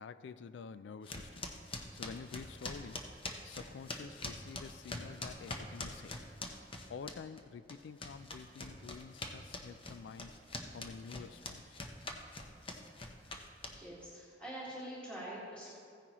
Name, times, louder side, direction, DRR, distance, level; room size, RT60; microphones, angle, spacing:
voice 1, 0.0-1.5 1.9-3.1 3.4-6.2 6.9-10.3 10.7-11.8, left 6 dB, 70° left, 14 dB, 0.3 m, -49 dB
sound 1, 1.1-7.4 7.7-14.0, left 2 dB, 30° left, 0.8 m, -44 dB
voice 2, 13.8-15.7, right 1 dB, 5° left, -9 dB, 2.0 m, -45 dB
15.5 x 9.8 x 3.0 m, 2.4 s
head